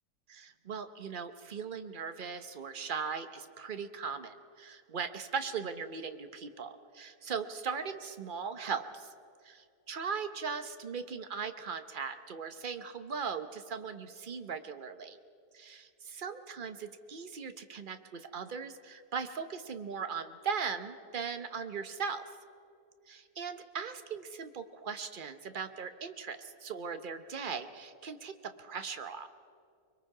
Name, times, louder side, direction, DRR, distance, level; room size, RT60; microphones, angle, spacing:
voice 1, 0.3-9.1 9.4-15.2 15.5-22.2 23.1-29.3, right 6 dB, 40° right, 9 dB, 0.8 m, -39 dB
25.0 x 22.0 x 4.9 m, 2.4 s
omnidirectional pair, 1.8 m